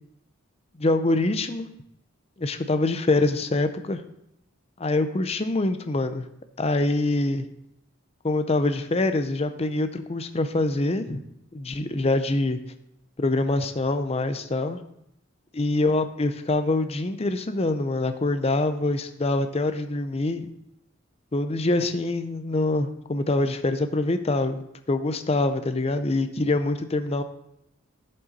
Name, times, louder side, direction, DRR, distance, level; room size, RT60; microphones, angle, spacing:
voice 1, 0.8-1.7 2.4-4.0 4.8-6.2 6.6-7.5 8.2-11.2 11.5-12.6 13.2-14.8 15.5-20.5 21.3-24.6 24.9-27.2, left 2 dB, 30° left, 9 dB, 0.6 m, -25 dB
11.0 x 5.4 x 4.1 m, 0.78 s
head